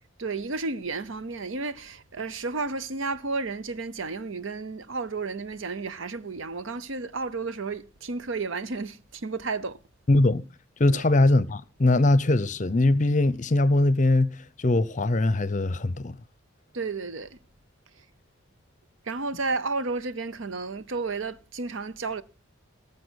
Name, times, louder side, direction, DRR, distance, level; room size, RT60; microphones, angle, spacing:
voice 1, 0.2-9.8 10.9-11.0 16.7-17.4 19.0-22.2, right 3 dB, 70° right, 0.8 m, -32 dB
voice 2, 10.1-10.4 10.8-14.3 14.6-16.1, left 2 dB, 35° left, 0.6 m, -21 dB
18.5 x 6.8 x 6.3 m
head